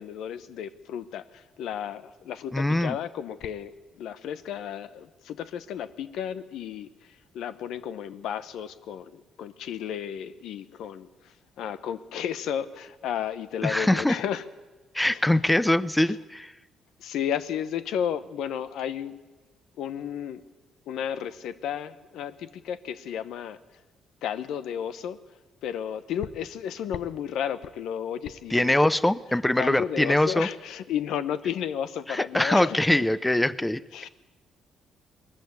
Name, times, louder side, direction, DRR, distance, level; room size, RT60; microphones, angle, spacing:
voice 1, 0.0-14.4 15.1-15.2 17.0-19.2 19.8-20.4 20.9-23.6 24.2-25.2 25.6-28.7 29.6-32.8 33.9-34.1, left 9 dB, 85° left, 13 dB, 0.9 m, -33 dB
voice 2, 2.5-3.0 13.6-14.2 14.9-16.5 28.5-30.5 32.1-33.8, left 1 dB, 10° left, 17 dB, 0.6 m, -23 dB
20.0 x 14.0 x 9.6 m, 1.2 s
cardioid pair, 90°, 0 cm